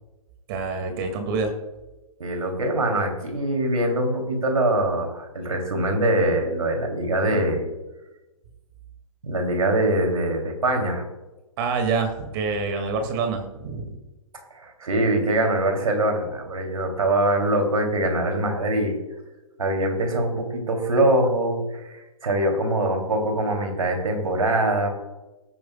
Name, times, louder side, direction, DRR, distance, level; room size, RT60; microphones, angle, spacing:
voice 1, 0.5-1.5 11.6-13.9, right 4 dB, 40° right, 5 dB, 2.4 m, -26 dB
voice 2, 2.2-7.7 9.2-11.0 14.5-18.9 19.6-24.9, right 1 dB, 75° right, 3 dB, 3.3 m, -23 dB
18.5 x 9.2 x 2.4 m, 1.1 s
figure-of-eight pair, 120°, 18 cm